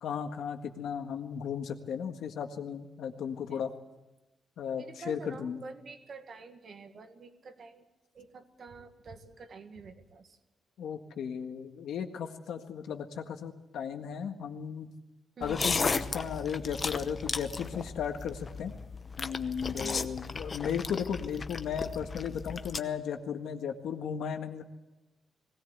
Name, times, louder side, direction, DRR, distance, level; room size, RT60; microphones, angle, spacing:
voice 1, 0.0-3.7 4.6-5.6 10.8-14.9 15.4-18.7 19.2-24.6, left 7 dB, 85° left, 6 dB, 1.7 m, -35 dB
voice 2, 4.8-7.9 8.1-10.4 15.4-15.6 19.7-20.1, right 4 dB, 45° right, 7 dB, 1.6 m, -47 dB
sound 1, 15.4-22.8, left 4 dB, 30° left, 0.8 m, -35 dB
19.5 x 17.0 x 8.2 m, 1.0 s
wide cardioid pair, 150°, 0 cm